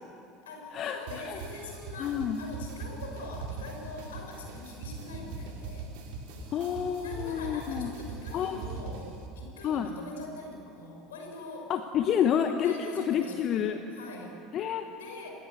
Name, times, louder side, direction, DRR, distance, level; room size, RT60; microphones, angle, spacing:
voice 1, 0.4-5.9 7.0-11.7 12.6-14.4 14.9-15.3, left 2 dB, 75° left, 2 dB, 6.2 m, -43 dB
sound 1, 1.1-9.3, right 4 dB, 65° right, 5.2 m, -41 dB
voice 2, 2.0-2.4 6.5-7.9 8.3-8.6 9.6-9.9 11.7-13.8 14.5-14.9, left 9 dB, 45° left, 7 dB, 1.4 m, -28 dB
27.5 x 21.0 x 8.3 m, 2.8 s
figure-of-eight pair, 70°, 0 cm